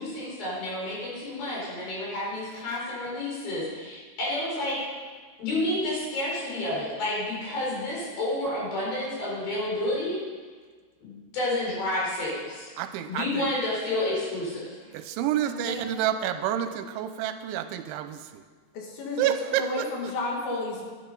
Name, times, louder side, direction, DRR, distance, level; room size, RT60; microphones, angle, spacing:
voice 1, 0.0-4.8 5.4-10.2 11.0-12.7 13.1-14.9, left 1 dB, 55° left, -5 dB, 5.6 m, -30 dB
voice 2, 12.8-13.5 14.9-18.4 19.2-20.1, right 11 dB, 90° right, 10 dB, 3.0 m, -29 dB
voice 3, 15.4-15.8 18.7-20.9, left 2 dB, 75° left, -1 dB, 4.1 m, -32 dB
11.5 x 11.0 x 5.4 m, 1.5 s
omnidirectional pair, 5.3 m